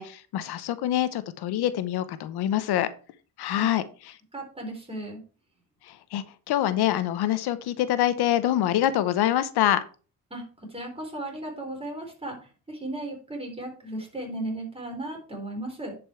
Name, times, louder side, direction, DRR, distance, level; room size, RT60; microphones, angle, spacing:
voice 1, 0.0-2.9 3.4-4.2 5.8-9.8, left 12 dB, 85° left, 13 dB, 0.9 m, -25 dB
voice 2, 4.3-5.2 10.3-15.9, right 1 dB, 15° right, 1 dB, 4.0 m, -36 dB
10.5 x 5.4 x 4.4 m, 0.37 s
cardioid pair, 100°, 38 cm